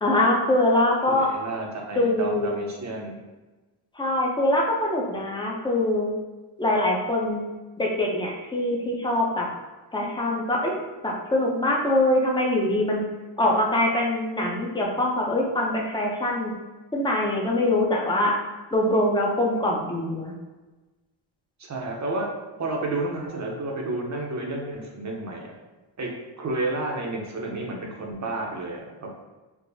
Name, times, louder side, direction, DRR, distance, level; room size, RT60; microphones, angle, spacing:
voice 1, 0.0-1.3 1.9-2.6 4.0-6.1 6.6-7.4 7.8-9.5 9.9-13.0 13.4-16.5 16.9-18.3 18.7-20.3, left 1 dB, 10° left, -2 dB, 0.5 m, -23 dB
voice 2, 1.1-3.2 21.6-22.3 22.6-25.5 26.0-26.1 26.4-29.1, right 2 dB, 40° right, 0 dB, 0.7 m, -31 dB
4.6 x 2.0 x 2.6 m, 1.2 s
wide cardioid pair, 115°, 47 cm